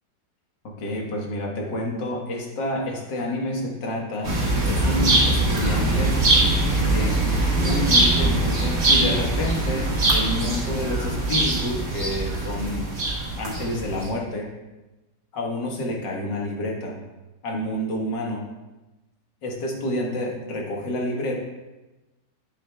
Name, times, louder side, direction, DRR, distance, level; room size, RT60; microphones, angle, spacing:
voice 1, 0.8-6.2 6.9-12.9 13.4-14.5 15.3-17.0 17.4-18.4 19.4-21.4, left 1 dB, 80° left, -1 dB, 2.1 m, -29 dB
sound 1, 4.2-14.1, right 2 dB, 55° right, 2.1 m, -22 dB
10.0 x 8.2 x 2.3 m, 1.1 s
omnidirectional pair, 1.9 m